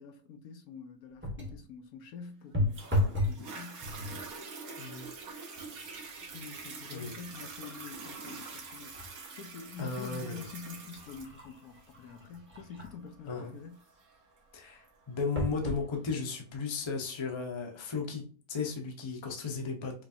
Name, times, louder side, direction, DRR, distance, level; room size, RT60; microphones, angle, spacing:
voice 1, 0.0-3.9 6.2-13.8, left 5 dB, 80° left, 1.1 m, -47 dB
sound 1, 1.2-1.7 2.5-3.4 3.8-4.3 5.0-5.2 5.6-9.1 9.6-9.7 10.4-13.1 15.4-15.9 16.6-16.7 16.9-17.0, left 1 dB, 10° right, 0.7 m, -35 dB
Toilet flush, 2.7-15.7 16.3-16.4, right 4 dB, 70° right, 1.4 m, -46 dB
voice 2, 4.8-5.1 6.9-7.1 9.8-10.3 13.2-13.5 14.5-20.0, left 5 dB, 25° left, 0.6 m, -35 dB
5.1 x 2.6 x 2.6 m
omnidirectional pair, 1.6 m